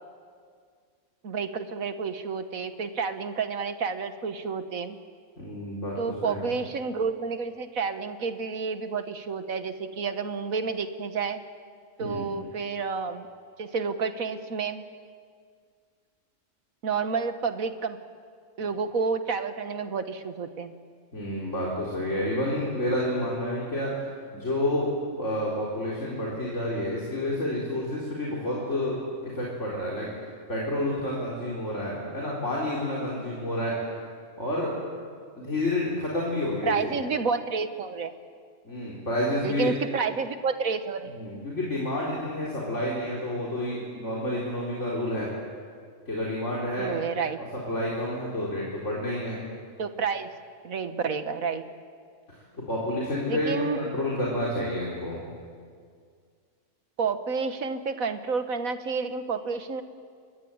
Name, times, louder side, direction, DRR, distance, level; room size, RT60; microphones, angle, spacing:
voice 1, 1.2-5.0 6.0-11.4 12.0-13.3 13.6-14.8 16.8-18.0 18.6-20.7 36.6-38.1 39.4-41.1 46.8-47.4 49.8-50.3 50.6-51.6 53.3-53.8 57.0-59.8, right 5 dB, 85° right, 9 dB, 1.9 m, -30 dB
voice 2, 5.4-6.4 12.0-12.3 21.1-23.9 24.3-24.9 25.1-29.0 29.2-30.1 30.5-33.7 34.4-34.7 35.4-37.0 38.6-39.7 41.1-45.3 46.1-47.0 47.4-49.4 52.5-55.3, left 1 dB, 60° left, -5 dB, 4.6 m, -29 dB
29.5 x 22.5 x 8.9 m, 2.1 s
omnidirectional pair, 1.4 m